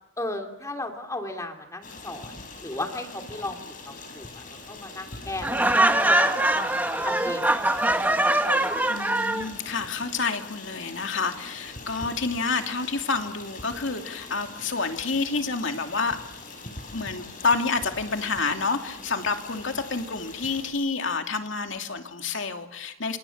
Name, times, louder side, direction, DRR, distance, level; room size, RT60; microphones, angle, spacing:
voice 1, 0.2-3.6 3.8-6.5 7.0-8.7, left 2 dB, 15° left, 4 dB, 2.9 m, -36 dB
Stream, 1.8-20.7, left 3 dB, 40° left, 6.7 m, -43 dB
Laughter, 5.4-9.5, right 1 dB, 10° right, 1.5 m, -22 dB
voice 2, 8.9-16.2 16.9-23.2, left 4 dB, 65° left, 5 dB, 2.7 m, -28 dB
28.0 x 27.0 x 7.3 m, 0.84 s
head